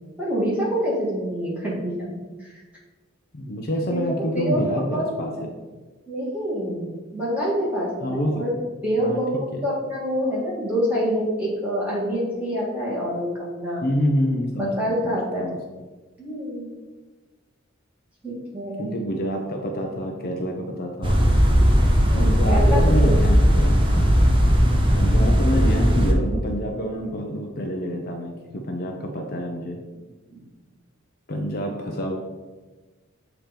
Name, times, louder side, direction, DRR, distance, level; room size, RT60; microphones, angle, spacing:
voice 1, 0.2-2.1 2.4-2.6 3.9-4.0 4.3-4.6 4.9-5.4 6.1-8.5 8.8-13.8 14.6-15.5 16.2-16.7 18.2-18.9 22.0-23.1 30.3-30.5, equal, 5° right, -7 dB, 1.9 m, -26 dB
voice 2, 3.3-5.3 8.0-8.4 9.0-9.2 9.5-9.6 13.8-15.6 18.8-21.2 22.2-23.8 24.9-29.8 31.3-32.2, equal, 45° left, 2 dB, 0.6 m, -27 dB
sound 1, 21.0-26.1, equal, 25° right, 0.7 m, -17 dB
7.3 x 2.9 x 5.1 m, 1.3 s
head